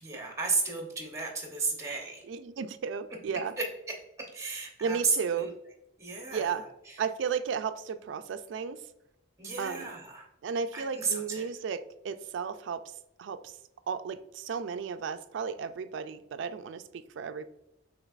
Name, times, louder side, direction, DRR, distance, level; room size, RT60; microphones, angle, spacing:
voice 1, 0.0-2.2 3.6-3.7 4.3-5.5 6.0-7.0 9.4-10.3 10.7-11.5, right 4 dB, 15° right, 0 dB, 0.8 m, -33 dB
voice 2, 2.3-3.5 4.8-5.5 6.3-6.6 7.0-8.8 9.6-9.9 10.4-11.8 12.0-12.8 13.2-13.6 13.9-17.5, right 6 dB, 75° right, 11 dB, 0.3 m, -34 dB
6.2 x 2.9 x 2.4 m, 0.84 s
head